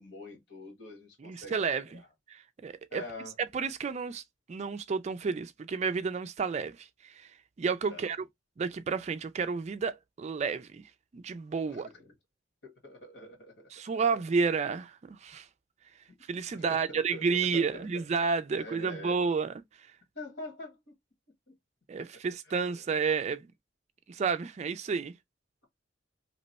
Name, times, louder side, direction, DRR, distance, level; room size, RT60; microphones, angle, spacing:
voice 1, 0.0-1.6 1.9-2.0 2.9-3.3 7.9-8.2 11.6-12.1 12.6-13.7 14.1-14.2 16.1-16.2 16.5-18.1 18.5-19.2 20.1-21.0 21.5-21.6 22.0-22.1 22.5-22.8, left 2 dB, 65° left, 1.4 m, -45 dB
voice 2, 1.2-2.0 2.3-3.0 3.5-4.2 4.5-7.3 7.6-8.3 8.6-10.8 11.1-11.9 13.7-15.5 16.3-19.5 21.9-23.5 24.1-25.1, right 5 dB, 35° right, 0.3 m, -31 dB
2.9 x 2.1 x 4.0 m
head